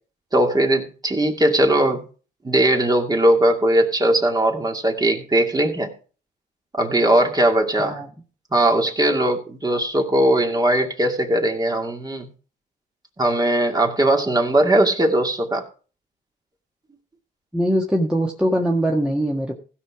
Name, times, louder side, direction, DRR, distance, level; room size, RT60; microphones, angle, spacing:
voice 1, 0.3-2.0 2.4-5.9 6.8-8.0 8.5-12.3 13.2-15.6, right 1 dB, 20° right, 3 dB, 2.3 m, -19 dB
voice 2, 17.5-19.5, right 1 dB, 5° right, -1 dB, 1.6 m, -22 dB
16.0 x 5.7 x 4.8 m, 0.37 s
cardioid pair, 90°, 20 cm